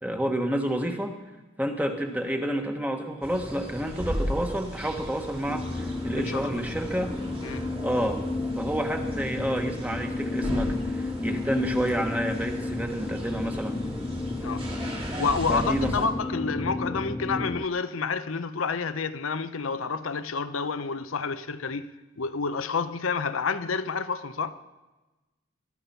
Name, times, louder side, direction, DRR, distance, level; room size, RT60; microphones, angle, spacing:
voice 1, 0.0-1.2 1.6-7.2 7.8-8.2 8.6-13.8 15.5-15.9, equal, 10° right, 1.4 m, -29 dB
sound 1, 3.2-16.1, equal, 30° right, 2.1 m, -37 dB
sound 2, 5.5-17.7, left 2 dB, 15° left, 0.5 m, -32 dB
voice 2, 15.2-24.6, left 5 dB, 85° left, 0.8 m, -29 dB
19.5 x 13.0 x 5.8 m
head